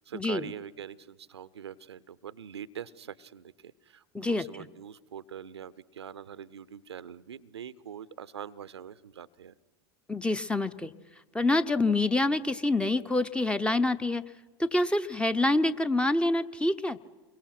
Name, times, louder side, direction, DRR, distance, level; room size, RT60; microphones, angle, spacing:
voice 1, 0.0-9.5, right 8 dB, 75° right, 18 dB, 0.7 m, -43 dB
voice 2, 10.1-10.9 11.3-14.2 14.6-17.0, left 2 dB, 5° left, 13 dB, 0.8 m, -26 dB
28.0 x 23.0 x 5.9 m, 1.3 s
figure-of-eight pair, 80°, 14 cm